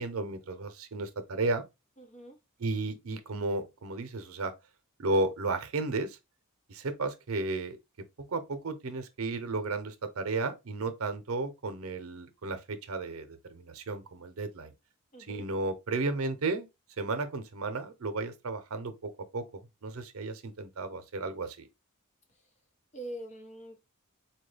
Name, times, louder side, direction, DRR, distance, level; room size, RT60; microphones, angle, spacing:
voice 1, 0.0-1.6 2.6-4.5 5.0-6.2 6.7-7.8 8.3-14.7 15.3-16.7 17.0-21.7, right 3 dB, 85° right, 0.7 m, -33 dB
voice 2, 2.0-2.4 15.1-15.5 22.3-22.4 22.9-23.9, right 1 dB, 35° left, 0.9 m, -44 dB
4.3 x 2.3 x 3.3 m
head